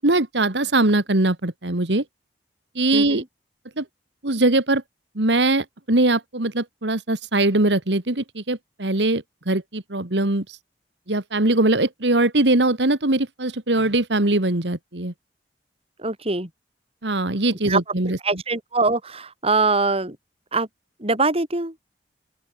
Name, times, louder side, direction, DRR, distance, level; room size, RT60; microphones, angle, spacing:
voice 1, 0.0-2.0 2.8-3.2 3.8-3.9 4.2-4.8 5.2-10.6 11.1-15.1 17.0-18.4, right 2 dB, 80° right, 2.2 m, -21 dB
voice 2, 2.9-3.2 16.0-16.5 17.7-17.8 18.2-20.2 20.5-20.7 21.0-21.7, right 3 dB, 35° right, 6.1 m, -23 dB
open air
head